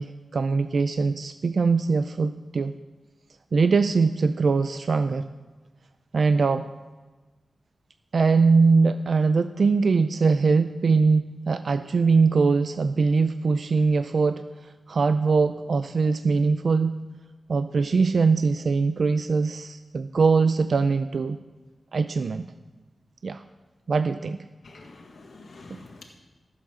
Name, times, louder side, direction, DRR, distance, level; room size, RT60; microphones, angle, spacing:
voice 1, 0.0-2.7 3.5-5.3 6.1-6.7 8.1-14.4 14.9-16.9 17.5-21.4 21.9-22.5 23.2-23.4 23.9-24.4, right 4 dB, 60° right, 10 dB, 0.4 m, -22 dB
voice 2, 24.6-26.0, left 3 dB, 70° left, 0 dB, 1.7 m, -47 dB
14.0 x 7.4 x 6.2 m, 1.2 s
wide cardioid pair, 130°, 0 cm